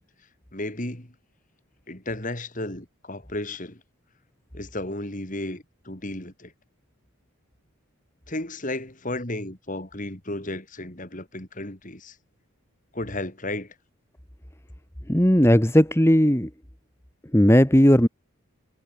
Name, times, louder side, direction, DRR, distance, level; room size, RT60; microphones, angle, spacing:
voice 1, 0.5-1.2 1.9-3.8 4.5-6.5 8.3-12.2 12.9-13.8, left 1 dB, 35° left, 3.4 m, -33 dB
voice 2, 15.1-16.5 17.3-18.1, equal, 10° left, 1.8 m, -17 dB
head